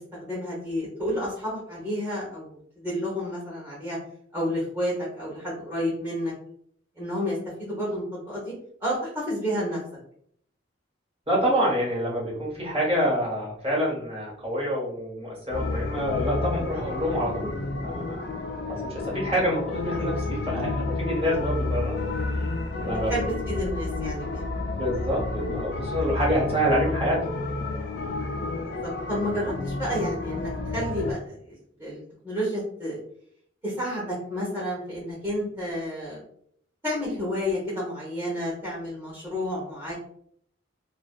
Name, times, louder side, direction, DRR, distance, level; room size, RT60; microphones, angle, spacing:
voice 1, 0.2-4.0 4.3-6.3 7.0-8.5 8.8-9.8 18.5-18.6 23.1-24.4 28.6-33.0 33.6-36.2 36.8-39.9, equal, 15° right, -8 dB, 0.7 m, -30 dB
voice 2, 11.3-18.2 18.8-22.0 22.3-22.5 22.8-23.1 24.7-27.2, equal, 30° right, -5 dB, 1.1 m, -27 dB
sound 1, 15.5-31.1, left 2 dB, 60° left, 0.4 m, -30 dB
2.5 x 2.2 x 2.2 m, 0.65 s
head